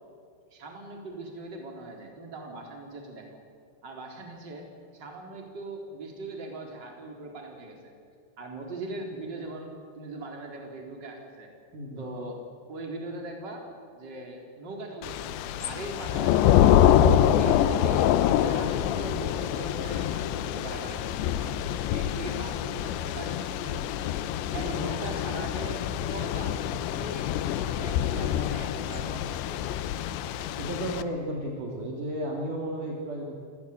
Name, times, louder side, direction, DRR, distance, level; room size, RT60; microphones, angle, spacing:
voice 1, 0.5-3.3 3.8-7.8 8.4-11.5 12.0-12.4 12.7-13.7 13.9-16.9 17.4-21.5 21.9-24.1 24.5-26.6 27.0-29.8, right 2 dB, 25° right, 2 dB, 3.9 m, -40 dB
voice 2, 11.7-12.1 21.7-21.9 24.5-24.7 30.6-33.3, right 1 dB, 50° right, -1 dB, 3.5 m, -34 dB
Thunder / Rain, 15.0-31.0, left 10 dB, 75° left, 2.9 m, -26 dB
27.5 x 18.5 x 8.4 m, 2.4 s
omnidirectional pair, 5.6 m